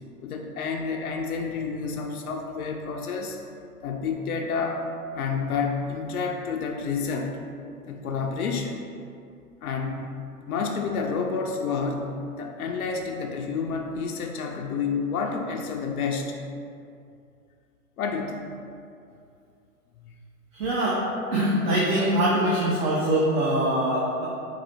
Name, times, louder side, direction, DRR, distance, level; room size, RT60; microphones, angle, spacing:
voice 1, 0.2-3.4 3.8-4.9 5.1-7.3 7.9-8.8 9.6-10.1 10.4-12.1 12.4-16.4 18.0-18.4 20.0-20.1, left 5 dB, 70° left, 1 dB, 0.6 m, -29 dB
voice 2, 20.5-21.0 21.3-24.3, right 1 dB, 35° right, -5 dB, 0.7 m, -23 dB
4.9 x 2.7 x 4.0 m, 2.5 s
hypercardioid pair, 120°, 46 cm